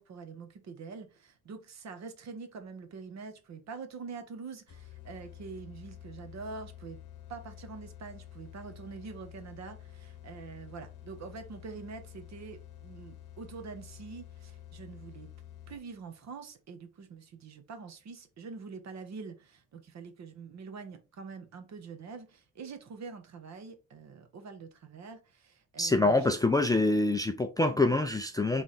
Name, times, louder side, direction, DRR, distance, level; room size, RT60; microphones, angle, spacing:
voice 1, 0.0-7.0 7.3-15.3 15.7-26.3, right 5 dB, 55° right, 1.0 m, -45 dB
sound 1, 4.7-16.1, left 11 dB, 70° left, 1.1 m, -50 dB
voice 2, 25.8-28.6, left 2 dB, 10° left, 0.3 m, -25 dB
3.3 x 3.2 x 4.1 m
cardioid pair, 130°, 32 cm